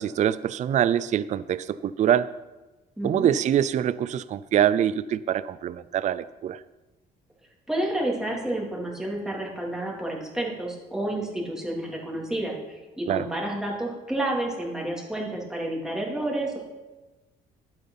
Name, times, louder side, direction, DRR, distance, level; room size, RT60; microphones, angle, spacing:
voice 1, 0.0-2.3 3.0-6.6 13.1-13.3, right 10 dB, 45° right, 16 dB, 0.4 m, -24 dB
voice 2, 3.0-3.3 7.7-16.6, right 1 dB, 5° right, -3 dB, 3.2 m, -30 dB
12.0 x 9.0 x 5.8 m, 1.1 s
cardioid pair, 110°, 17 cm